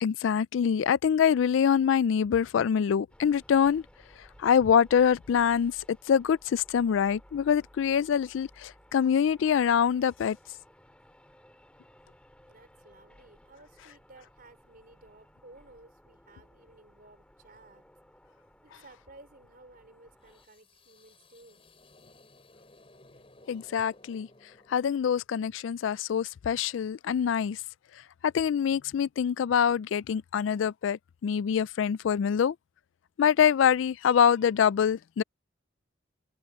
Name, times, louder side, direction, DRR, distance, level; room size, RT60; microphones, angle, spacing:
voice 1, 0.0-3.8 4.4-5.8 6.1-10.4 23.5-24.3 24.7-27.6 28.2-32.5 33.2-35.2, left 7 dB, 70° left, 0.3 m, -25 dB
sound 1, 3.1-20.5, equal, 5° left, 2.2 m, -58 dB
voice 2, 12.5-17.9 18.6-21.6, right 2 dB, 45° right, 4.3 m, -56 dB
sound 2, 20.2-25.3, left 2 dB, 30° left, 5.2 m, -58 dB
head